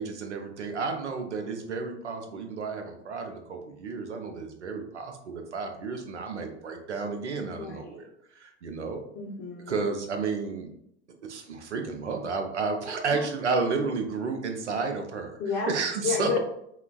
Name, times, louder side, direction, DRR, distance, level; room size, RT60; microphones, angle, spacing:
voice 1, 0.0-8.0 8.3-9.0 9.7-10.7 11.2-15.4 15.7-16.3, right 4 dB, 90° right, 4 dB, 0.6 m, -32 dB
voice 2, 7.5-8.1 9.1-9.8 13.1-13.2 15.4-15.7 16.0-16.4, left 5 dB, 35° left, -2 dB, 0.6 m, -31 dB
3.3 x 2.2 x 2.2 m, 0.74 s
hypercardioid pair, 85°, 34 cm